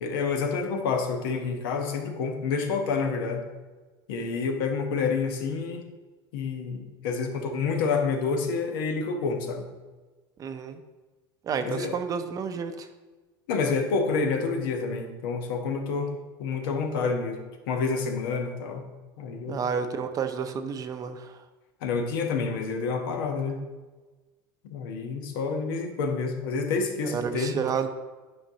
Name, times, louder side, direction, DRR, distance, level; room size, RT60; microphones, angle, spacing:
voice 1, 0.0-3.4 4.1-5.8 6.3-9.7 11.6-12.0 13.5-16.1 16.4-18.8 19.2-19.6 21.8-23.6 24.6-27.5, left 4 dB, 80° left, 4 dB, 1.0 m, -28 dB
voice 2, 10.4-10.8 11.4-12.9 19.5-21.4 27.0-27.9, right 6 dB, 30° right, 9 dB, 0.6 m, -30 dB
8.7 x 5.2 x 2.8 m, 1.3 s
supercardioid pair, 115°, 11 cm